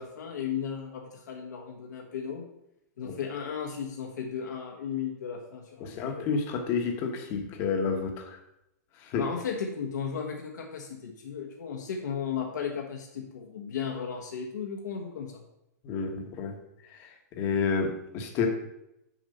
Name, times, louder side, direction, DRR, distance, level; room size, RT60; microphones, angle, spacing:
voice 1, 0.0-2.5 3.0-6.3 9.2-15.4, left 7 dB, 80° left, 0 dB, 1.5 m, -35 dB
voice 2, 5.8-8.4 9.0-9.2 15.8-16.6 16.9-18.5, left 5 dB, 25° left, 4 dB, 1.0 m, -30 dB
7.2 x 4.4 x 6.6 m, 0.83 s
hypercardioid pair, 170°, 9 cm